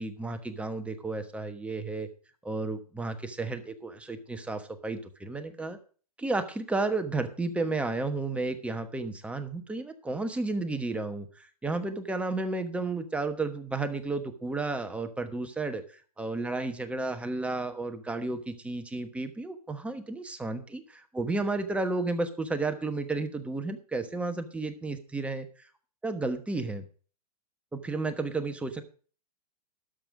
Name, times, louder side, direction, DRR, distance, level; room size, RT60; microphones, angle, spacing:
voice 1, 0.0-2.1 2.4-5.8 6.2-15.8 16.2-25.5 26.0-26.8 27.7-28.8, right 3 dB, 5° right, 8 dB, 1.2 m, -32 dB
13.0 x 5.4 x 6.2 m, 0.41 s
hypercardioid pair, 130°, 20 cm